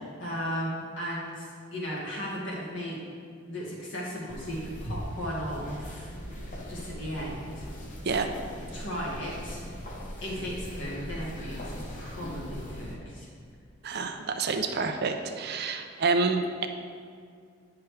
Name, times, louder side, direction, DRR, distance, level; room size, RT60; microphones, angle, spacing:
voice 1, 0.2-3.0 3.5-6.1 6.7-7.7 8.7-9.7 10.2-13.3, equal, 65° left, -5 dB, 1.9 m, -35 dB
sound 1, 4.3-13.0, equal, 40° left, 0.9 m, -40 dB
voice 2, 13.8-16.7, right 4 dB, 55° right, 6 dB, 0.5 m, -28 dB
9.3 x 5.8 x 3.3 m, 2.2 s
head